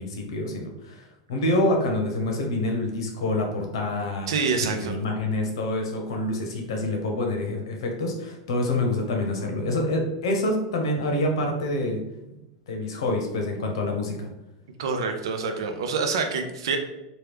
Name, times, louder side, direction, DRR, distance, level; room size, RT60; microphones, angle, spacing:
voice 1, 0.0-4.3 4.6-12.0 12.3-12.4 12.7-14.3, left 1 dB, 85° left, 2 dB, 0.8 m, -27 dB
voice 2, 4.3-5.0 14.8-16.8, right 4 dB, 80° right, 5 dB, 0.5 m, -26 dB
3.1 x 2.3 x 3.4 m, 0.93 s
supercardioid pair, 165°, 3 cm